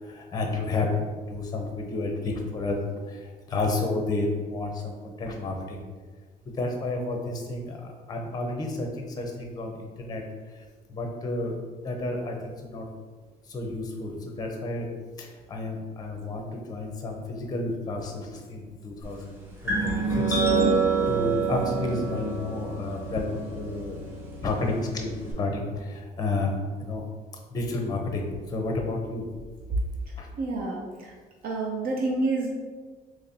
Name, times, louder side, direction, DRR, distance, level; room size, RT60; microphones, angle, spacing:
voice 1, 0.0-2.8 3.1-5.9 6.5-10.2 10.5-10.6 10.9-11.5 11.8-12.9 13.5-14.9 15.2-20.4 21.1-24.0 24.4-27.0 27.5-29.3 30.2-30.3, left 2 dB, 25° left, 2 dB, 0.6 m, -31 dB
sound 1, 19.7-25.3, right 4 dB, 10° right, 1.0 m, -27 dB
voice 2, 30.4-31.1 31.4-32.5, right 2 dB, 60° right, -1 dB, 0.5 m, -28 dB
4.1 x 3.0 x 2.6 m, 1.5 s
cardioid pair, 110°, 17 cm